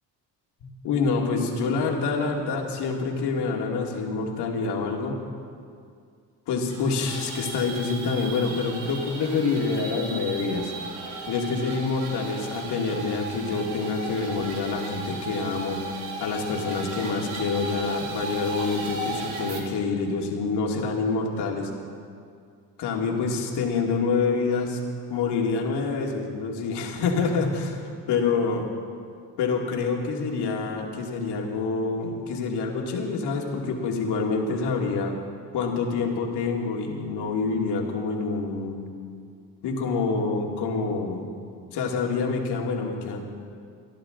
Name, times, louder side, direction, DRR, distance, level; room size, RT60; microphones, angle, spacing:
voice 1, 0.6-5.2 6.5-10.7 11.3-15.8 16.2-21.7 22.8-24.8 25.1-27.8 28.1-28.7 29.4-35.1 35.5-38.8 39.6-41.3 41.7-43.2, left 4 dB, 75° left, 0 dB, 2.5 m, -27 dB
sound 1, 6.6-19.6, right 3 dB, 90° right, 2.1 m, -36 dB
26.5 x 11.0 x 3.9 m, 2.3 s
supercardioid pair, 80°, 41 cm